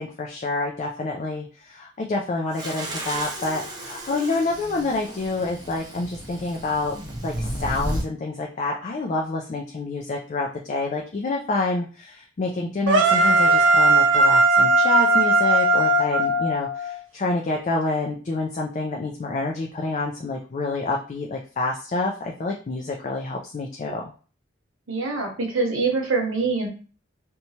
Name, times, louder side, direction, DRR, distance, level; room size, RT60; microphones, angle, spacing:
voice 1, 0.0-24.0, left 3 dB, 35° left, 0 dB, 0.3 m, -28 dB
sound 1, 2.5-8.1, right 1 dB, 20° right, 0.5 m, -33 dB
sound 2, 12.9-17.0, right 2 dB, 70° right, 0.5 m, -18 dB
voice 2, 24.9-26.7, right 4 dB, 85° right, 1 dB, 0.9 m, -24 dB
2.9 x 2.2 x 2.7 m, 0.38 s
head